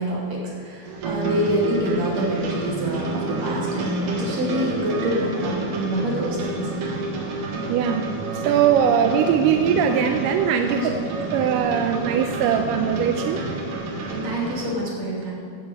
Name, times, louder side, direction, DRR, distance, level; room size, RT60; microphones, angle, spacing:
voice 1, 0.0-6.7 10.7-11.1 14.1-15.3, equal, 45° right, -4 dB, 3.6 m, -27 dB
sound 1, 0.8-14.7, right 3 dB, 65° right, 3.1 m, -29 dB
voice 2, 7.7-8.0 8.3-10.8 11.3-13.4, right 8 dB, 80° right, 6 dB, 2.0 m, -21 dB
12.0 x 7.4 x 8.2 m, 2.3 s
omnidirectional pair, 4.3 m